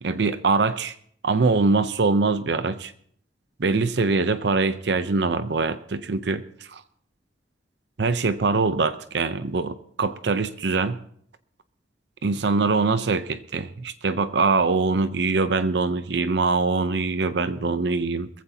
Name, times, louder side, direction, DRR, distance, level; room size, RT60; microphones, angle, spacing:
voice 1, 0.0-0.9 1.2-2.9 3.6-6.4 6.7-6.8 8.0-11.0 12.2-18.3, right 3 dB, 70° right, 12 dB, 0.7 m, -23 dB
21.0 x 15.0 x 2.8 m, 0.63 s
head